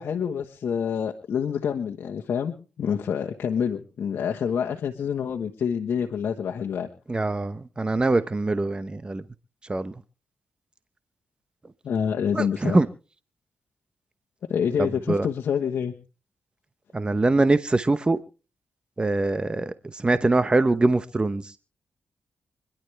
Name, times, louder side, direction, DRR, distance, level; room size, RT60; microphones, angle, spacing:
voice 1, 0.0-6.9 11.8-12.8 14.5-15.9, left 7 dB, 75° left, 1.3 m, -27 dB
voice 2, 7.1-9.2 9.7-9.9 12.3-12.9 14.8-15.3 16.9-18.2 19.0-21.5, right 2 dB, 25° right, 0.9 m, -23 dB
26.0 x 11.5 x 3.4 m
cardioid pair, 65°, 4 cm